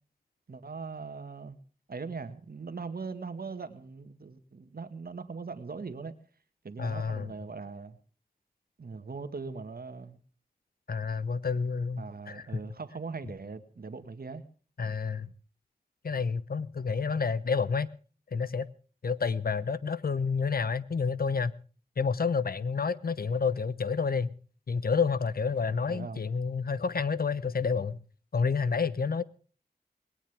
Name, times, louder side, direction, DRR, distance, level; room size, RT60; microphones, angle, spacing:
voice 1, 0.5-1.6 1.9-6.1 6.6-8.0 8.8-10.2 12.0-14.4 25.9-26.2, right 4 dB, 75° right, 1.9 m, -40 dB
voice 2, 6.8-7.3 10.9-12.5 14.8-15.3 16.0-17.9 18.3-18.7 19.0-21.5 22.0-24.3 24.7-28.0 28.3-29.2, left 5 dB, 75° left, 1.0 m, -29 dB
20.5 x 18.0 x 3.6 m
wide cardioid pair, 85°, 16 cm